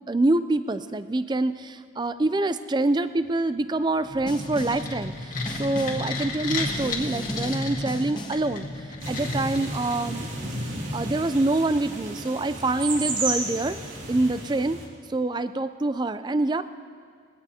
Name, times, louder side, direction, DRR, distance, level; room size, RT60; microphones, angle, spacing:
voice 1, 0.1-10.3 10.9-14.8 15.1-16.6, right 2 dB, 20° right, 12 dB, 0.4 m, -26 dB
sound 1, 4.0-10.4, left 2 dB, 45° left, 1.7 m, -32 dB
Snare drum, 4.3-4.9 5.5-6.1 6.7-8.5, equal, 25° left, 0.9 m, -37 dB
sound 2, 9.0-14.9, right 2 dB, 80° right, 2.3 m, -33 dB
21.0 x 16.5 x 2.9 m, 2.1 s
head